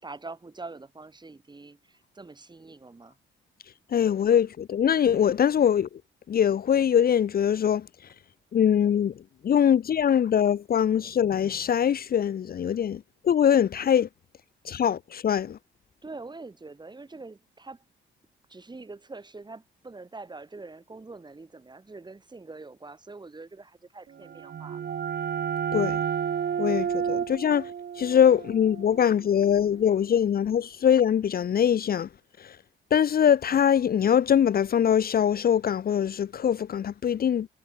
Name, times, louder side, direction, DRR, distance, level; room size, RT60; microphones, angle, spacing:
voice 1, 0.0-3.2 16.0-17.8 18.5-24.8, right 3 dB, 20° right, 6.0 m, -44 dB
voice 2, 3.9-5.9 6.3-7.9 8.5-9.1 9.4-14.1 14.6-15.6 25.7-26.0 26.6-27.7 28.0-32.1 32.4-32.6 32.9-37.5, left 8 dB, 50° left, 1.0 m, -23 dB
sound 1, 24.2-29.7, right 8 dB, 55° right, 3.3 m, -31 dB
cardioid pair, 90°, 20 cm